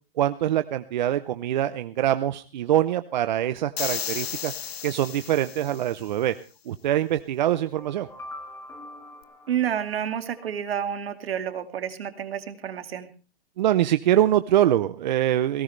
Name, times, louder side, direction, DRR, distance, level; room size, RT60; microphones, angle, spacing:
voice 1, 0.2-4.5 4.8-6.3 6.7-8.1 13.6-15.6, right 12 dB, 50° right, 11 dB, 0.7 m, -24 dB
sound 1, 3.8-6.0, left 9 dB, 85° left, 1.3 m, -33 dB
sound 2, 7.5-10.6, left 1 dB, 10° left, 1.7 m, -44 dB
voice 2, 9.5-13.1, right 9 dB, 70° right, 8 dB, 2.5 m, -29 dB
19.5 x 17.5 x 3.3 m, 0.34 s
hypercardioid pair, 165°, 30 cm